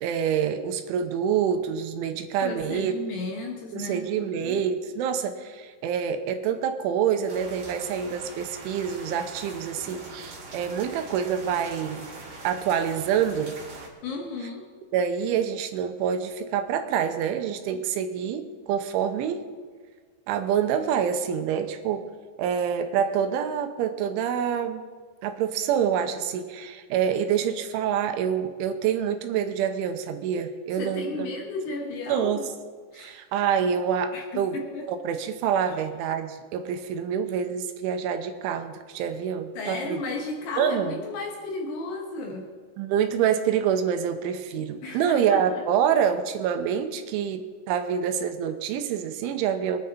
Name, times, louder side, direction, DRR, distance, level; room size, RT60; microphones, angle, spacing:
voice 1, 0.0-2.9 3.7-12.1 12.4-13.5 14.9-19.4 20.3-22.1 22.4-24.8 25.2-31.3 32.1-32.4 32.9-34.6 34.9-40.0 40.6-41.0 42.8-49.8, right 8 dB, 80° right, 7 dB, 3.2 m, -26 dB
voice 2, 2.4-4.7 14.0-14.7 30.7-32.5 32.9-33.2 34.1-34.9 35.7-35.8 39.6-42.5 44.8-45.7, left 3 dB, 70° left, 2 dB, 2.8 m, -34 dB
sound 1, 7.3-13.9, right 2 dB, 40° right, 2.8 m, -42 dB
23.5 x 9.8 x 4.2 m, 1.5 s
omnidirectional pair, 5.6 m